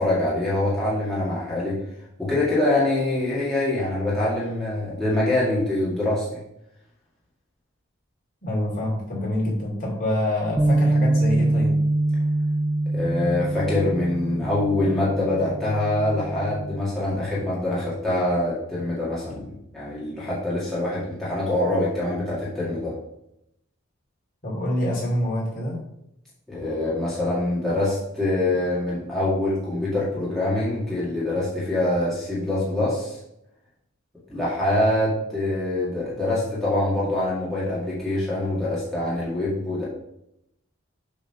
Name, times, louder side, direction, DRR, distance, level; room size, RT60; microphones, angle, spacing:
voice 1, 0.0-1.8 2.2-6.4 12.9-22.9 26.5-33.2 34.3-39.8, left 1 dB, ahead, -9 dB, 1.9 m, -24 dB
voice 2, 8.4-11.8 24.4-25.8, left 1 dB, 40° left, -4 dB, 2.7 m, -26 dB
Bass guitar, 10.6-16.8, right 2 dB, 15° right, 0.3 m, -24 dB
7.1 x 3.8 x 5.8 m, 0.81 s
head